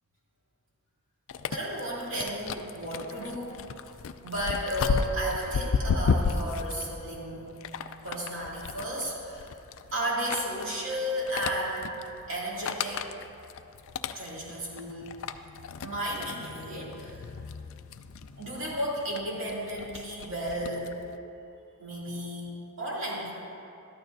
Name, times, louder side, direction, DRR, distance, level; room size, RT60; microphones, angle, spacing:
sound 1, 1.3-21.2, left 5 dB, 60° left, 0.4 m, -35 dB
voice 1, 1.5-3.5 4.2-7.5 8.0-9.5 9.9-12.0 12.3-13.0 14.1-15.1 15.8-17.2 18.4-20.8 21.8-22.5 22.8-23.3, equal, 60° right, -6 dB, 2.5 m, -33 dB
13.5 x 11.5 x 2.7 m, 2.8 s
head